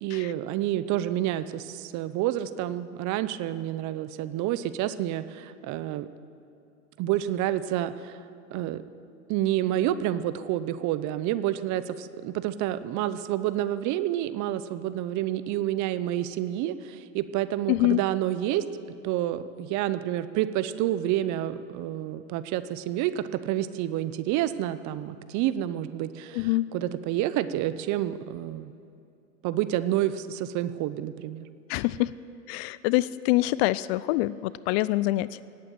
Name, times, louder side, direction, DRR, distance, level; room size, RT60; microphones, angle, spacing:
voice 1, 0.0-6.1 7.0-8.2 8.5-8.8 9.3-18.6 19.0-28.7 29.4-31.5, right 13 dB, 45° right, 13 dB, 0.8 m, -29 dB
voice 2, 17.7-18.0 26.3-26.7 31.7-32.1 32.5-35.4, left 18 dB, 50° left, 18 dB, 0.5 m, -25 dB
17.5 x 8.8 x 7.9 m, 2.6 s
hypercardioid pair, 95°, 41 cm